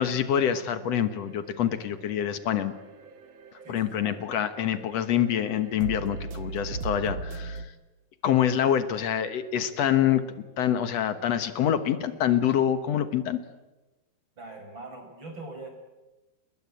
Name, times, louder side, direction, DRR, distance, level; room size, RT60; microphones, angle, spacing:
voice 1, 0.0-2.7 3.7-7.6 8.2-10.2 10.6-13.4, left 9 dB, 65° left, 10 dB, 1.6 m, -26 dB
sound 1, 0.8-7.6, right 3 dB, 75° right, 1.1 m, -39 dB
voice 2, 3.6-4.2 14.4-15.7, right 2 dB, 30° right, 4 dB, 6.2 m, -42 dB
30.0 x 20.5 x 8.7 m, 1.1 s
omnidirectional pair, 4.7 m